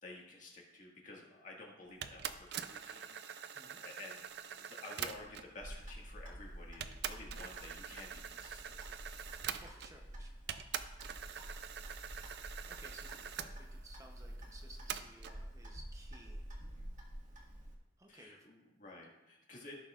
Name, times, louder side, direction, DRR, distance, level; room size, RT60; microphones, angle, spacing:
voice 1, 0.0-3.1 3.8-4.2 4.5-8.9 18.1-19.7, left 2 dB, 45° left, -2 dB, 1.8 m, -52 dB
sound 1, 2.0-5.6 6.3-6.4 6.8-10.1 10.5-13.5 14.9-15.4, right 8 dB, 65° right, 0.4 m, -44 dB
Clock, 5.6-17.7, right 1 dB, 45° right, 1.6 m, -49 dB
voice 2, 9.6-10.3 12.7-16.4 18.0-18.5, right 1 dB, 15° right, 1 dB, 0.8 m, -58 dB
15.0 x 6.4 x 2.5 m, 0.99 s
head